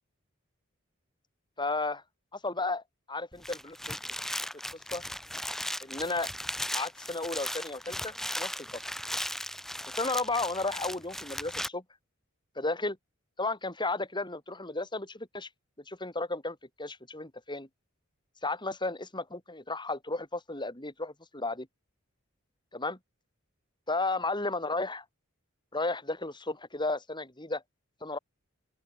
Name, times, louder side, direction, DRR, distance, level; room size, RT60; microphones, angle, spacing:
voice 1, 1.6-2.0 2.3-4.0 4.7-5.0 5.8-6.3 6.7-8.8 10.0-11.8 12.6-13.0 13.4-15.5 15.9-17.7 18.4-21.7 22.7-23.0 23.9-25.0 25.7-27.6 28.0-28.2, left 2 dB, 20° left, 7.0 m, -33 dB
sound 1, 3.3-11.7, equal, ahead, 4.7 m, -37 dB
open air
head